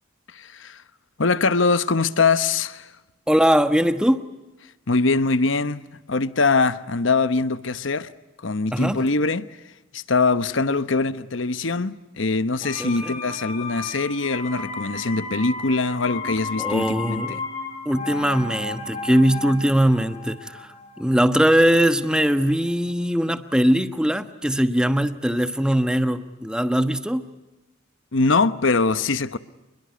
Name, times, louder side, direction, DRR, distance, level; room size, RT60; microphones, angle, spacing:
voice 1, 0.3-0.8 1.2-2.9 4.9-8.1 8.4-9.5 9.9-17.4 28.1-29.4, left 3 dB, 70° left, 1.0 m, -22 dB
voice 2, 3.3-4.2 8.7-9.0 12.8-13.1 16.6-17.4 17.8-27.2, equal, 5° right, 1.2 m, -21 dB
sound 1, 12.6-22.3 22.6-22.7, left 3 dB, 40° left, 6.3 m, -34 dB
27.5 x 22.0 x 9.6 m
head